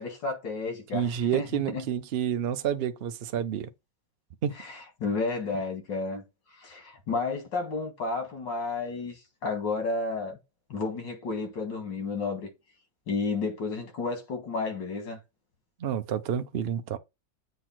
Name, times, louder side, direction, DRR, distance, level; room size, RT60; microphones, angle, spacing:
voice 1, 0.0-1.1 1.3-1.8 4.6-6.2 6.5-10.4 10.7-12.5 13.1-15.2, left 4 dB, 85° left, 2.6 m, -32 dB
voice 2, 0.9-3.7 4.4-4.6 15.8-17.0, right 9 dB, 80° right, 0.5 m, -29 dB
8.0 x 3.0 x 5.8 m
omnidirectional pair, 1.9 m